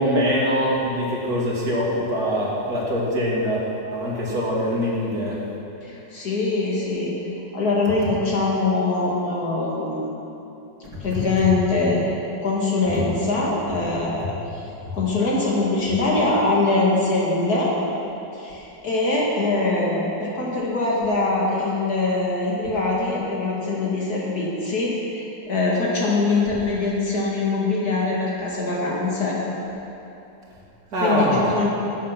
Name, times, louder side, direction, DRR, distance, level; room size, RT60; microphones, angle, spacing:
voice 1, 0.0-3.6 3.9-5.4 30.9-31.5, equal, 50° right, -5 dB, 2.7 m, -23 dB
voice 2, 5.8-7.2 7.5-10.1 11.0-12.0 12.4-14.3 14.9-17.7 18.4-29.4 31.0-31.7, left 3 dB, 50° left, -4 dB, 2.6 m, -23 dB
11.5 x 8.0 x 5.9 m, 2.9 s
omnidirectional pair, 2.1 m